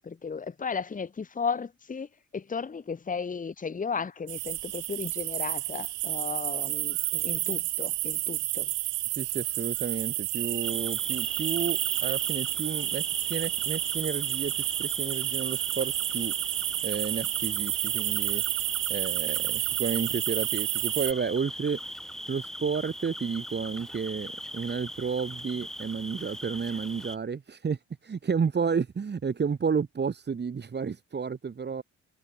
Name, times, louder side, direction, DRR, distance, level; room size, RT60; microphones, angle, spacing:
voice 1, 0.0-8.7, left 5 dB, 25° left, 1.4 m, -35 dB
sound 1, 4.3-21.1, right 17 dB, 90° right, 1.1 m, -30 dB
voice 2, 9.1-16.3 16.8-18.4 18.9-22.0 22.3-31.8, right 6 dB, 35° right, 2.0 m, -31 dB
Cricket, 10.6-27.2, equal, ahead, 4.0 m, -40 dB
cardioid pair, 90°, 30 cm